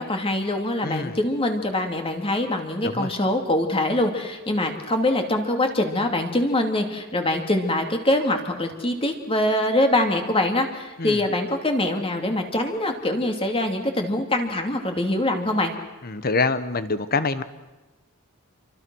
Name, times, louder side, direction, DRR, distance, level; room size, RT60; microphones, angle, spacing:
voice 1, 0.0-15.7, left 1 dB, 25° left, 4 dB, 2.6 m, -24 dB
voice 2, 0.8-1.2 2.8-3.1 11.0-11.2 16.0-17.4, left 3 dB, 45° left, 13 dB, 1.2 m, -25 dB
28.0 x 24.5 x 6.3 m, 1.2 s
head